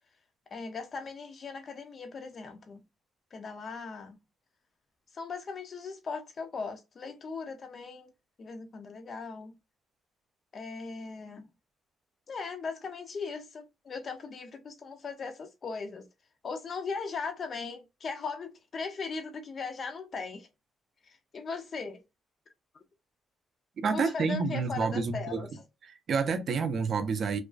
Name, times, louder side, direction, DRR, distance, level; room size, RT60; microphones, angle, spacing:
voice 1, 0.5-2.8 3.3-4.2 5.1-8.1 8.4-9.6 10.5-11.5 12.3-16.1 16.4-20.5 21.0-22.0 23.9-25.6, left 4 dB, 45° left, 0.4 m, -38 dB
voice 2, 23.8-25.5 25.8-27.4, right 5 dB, 55° right, 0.5 m, -29 dB
2.3 x 2.3 x 2.3 m
cardioid pair, 90°, 0 cm